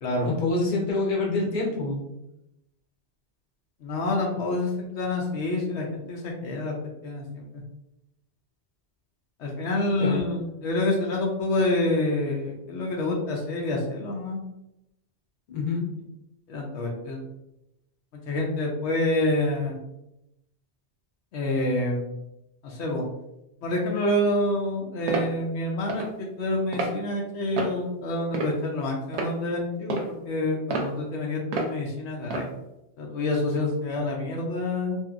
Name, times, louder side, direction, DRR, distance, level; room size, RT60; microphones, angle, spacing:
voice 1, 0.2-2.0 10.0-10.2 15.5-15.9, left 3 dB, 55° left, -2 dB, 0.8 m, -26 dB
voice 2, 3.8-6.7 7.0-7.5 9.4-14.4 16.5-17.2 18.3-19.8 21.3-22.1 22.6-23.0 23.6-32.5 33.0-35.0, left 1 dB, 85° left, -1 dB, 0.9 m, -27 dB
sound 1, 25.1-25.3 25.9-26.1 26.7-26.9 27.6-27.8 28.3-28.7 29.1-29.3 29.9-30.1 30.7-30.9 31.5-31.7 32.3-32.5, right 3 dB, 80° right, 0.9 m, -28 dB
2.8 x 2.6 x 2.4 m, 0.88 s
omnidirectional pair, 1.1 m